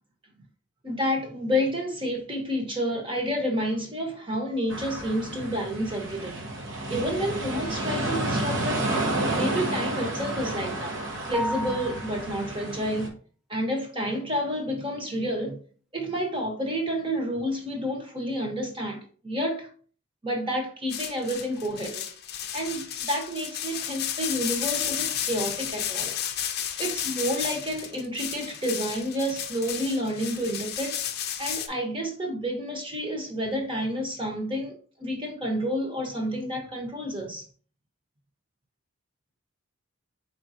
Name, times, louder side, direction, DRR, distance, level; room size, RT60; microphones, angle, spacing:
voice 1, 0.8-6.4 6.9-8.9 9.3-11.0 11.3-13.1 13.5-15.6 15.9-19.7 20.2-22.1 22.5-26.1 26.8-31.0 31.4-37.4, equal, 25° right, 1.0 m, -30 dB
sound 1, 4.7-13.1, right 1 dB, 65° right, 1.0 m, -30 dB
sound 2, 11.3-12.4, equal, ahead, 0.4 m, -33 dB
sound 3, 20.9-31.7, left 10 dB, 50° left, 0.5 m, -32 dB
4.7 x 3.8 x 2.7 m
head